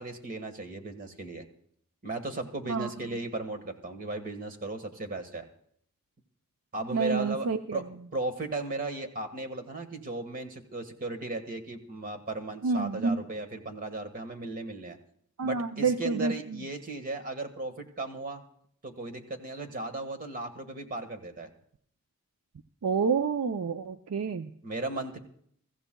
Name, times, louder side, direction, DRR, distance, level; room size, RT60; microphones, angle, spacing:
voice 1, 0.0-1.4 2.0-5.5 6.7-7.8 8.1-15.0 15.4-18.4 18.8-21.5 24.6-25.2, right 2 dB, 40° right, 7 dB, 1.5 m, -36 dB
voice 2, 2.7-3.2 6.9-7.8 12.6-13.2 15.4-16.6 22.8-24.5, right 5 dB, 85° right, 9 dB, 0.5 m, -29 dB
23.5 x 14.5 x 2.3 m, 0.64 s
head